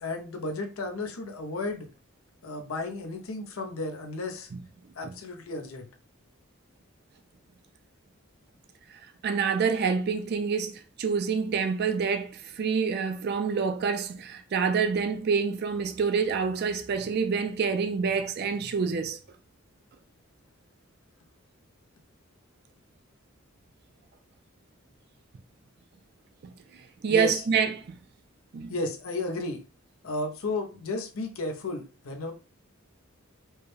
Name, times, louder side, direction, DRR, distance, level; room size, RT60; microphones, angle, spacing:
voice 1, 0.0-1.9 2.4-4.5 5.0-5.9 27.1-27.4 28.7-29.6 30.0-32.3, left 2 dB, 90° left, 0.7 m, -33 dB
voice 2, 9.2-19.2 26.4-26.5 27.0-28.0 28.5-28.8, right 6 dB, 50° right, 0.4 m, -27 dB
4.6 x 2.1 x 3.2 m
head